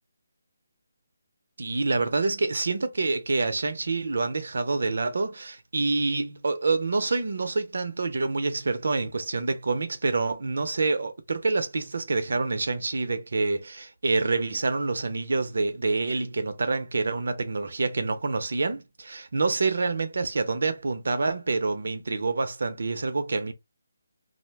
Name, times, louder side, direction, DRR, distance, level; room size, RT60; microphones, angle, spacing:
voice 1, 1.6-23.5, right 3 dB, 65° right, 0.6 m, -27 dB
2.5 x 2.1 x 3.3 m
figure-of-eight pair, 155°, 0 cm